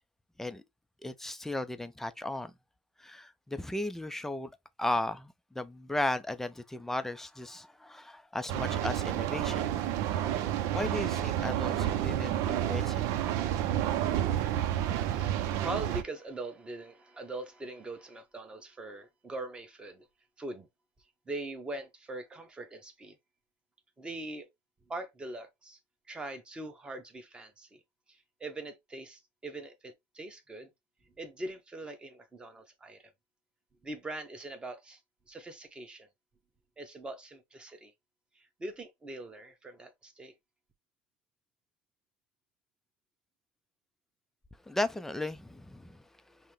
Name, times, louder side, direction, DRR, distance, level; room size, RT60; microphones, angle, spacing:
voice 1, 1.0-2.5 3.0-4.5 4.8-9.7 10.7-13.0 44.7-46.4, left 1 dB, 5° left, 0.5 m, -35 dB
sound 1, 8.5-16.0, right 11 dB, 60° right, 0.6 m, -30 dB
voice 2, 15.0-20.1 20.4-20.7 21.3-23.2 24.0-24.5 24.9-25.8 26.1-27.8 28.1-30.7 31.2-33.1 33.8-35.0 35.3-36.1 36.8-37.9 38.3-40.3, right 2 dB, 15° right, 1.1 m, -42 dB
5.5 x 2.1 x 3.2 m
supercardioid pair, 105°, 6 cm